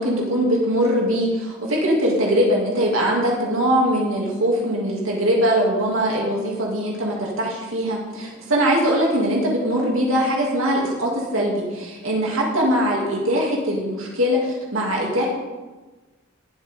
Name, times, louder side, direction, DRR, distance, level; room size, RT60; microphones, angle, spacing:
voice 1, 0.0-15.3, equal, 80° right, -3 dB, 2.7 m, -21 dB
19.0 x 8.0 x 3.8 m, 1.2 s
head